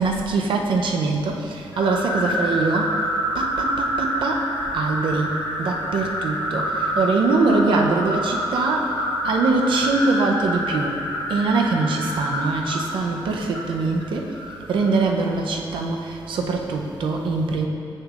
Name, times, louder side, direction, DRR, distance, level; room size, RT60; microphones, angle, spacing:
voice 1, 0.0-3.0 3.3-4.5 4.7-8.9 9.2-11.0 11.3-14.4 14.7-17.7, right 3 dB, 70° right, 2 dB, 0.6 m, -23 dB
sound 1, 1.7-15.1, equal, 50° left, 1.2 m, -27 dB
8.2 x 6.4 x 2.4 m, 2.6 s
wide cardioid pair, 175°, 9 cm